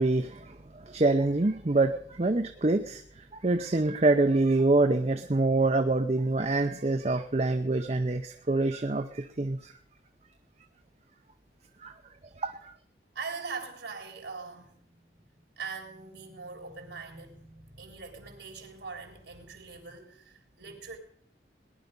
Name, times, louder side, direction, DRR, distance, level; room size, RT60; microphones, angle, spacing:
voice 1, 0.0-3.0 3.3-9.7 11.8-11.9 12.4-12.7, right 2 dB, 35° right, 7 dB, 0.6 m, -26 dB
voice 2, 13.1-15.1 15.6-21.0, right 4 dB, 75° right, 3 dB, 3.6 m, -42 dB
19.0 x 11.0 x 5.3 m, 0.63 s
head